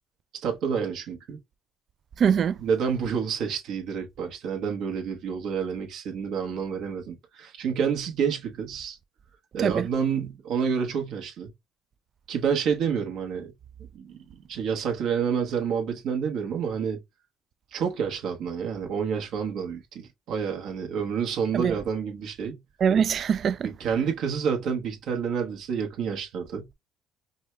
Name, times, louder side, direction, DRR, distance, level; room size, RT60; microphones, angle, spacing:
voice 1, 0.4-1.4 2.6-9.0 9.5-11.5 12.3-13.5 13.9-17.0 17.7-22.6 23.8-26.7, right 7 dB, 65° right, 1.2 m, -29 dB
voice 2, 2.2-2.6 9.6-9.9 21.5-21.7 22.8-23.7, right 7 dB, 45° right, 0.3 m, -23 dB
5.3 x 2.2 x 3.2 m
cardioid pair, 105°, 0 cm